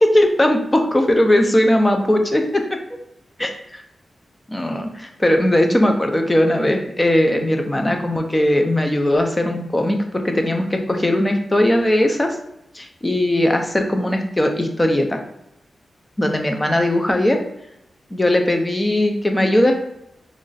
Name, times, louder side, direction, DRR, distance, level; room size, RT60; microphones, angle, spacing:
voice 1, 0.0-2.8 3.4-3.5 4.5-12.4 12.7-15.2 16.2-17.4 18.1-19.7, left 1 dB, 15° left, 4 dB, 0.4 m, -18 dB
3.1 x 2.5 x 3.8 m, 0.83 s
wide cardioid pair, 155°, 0 cm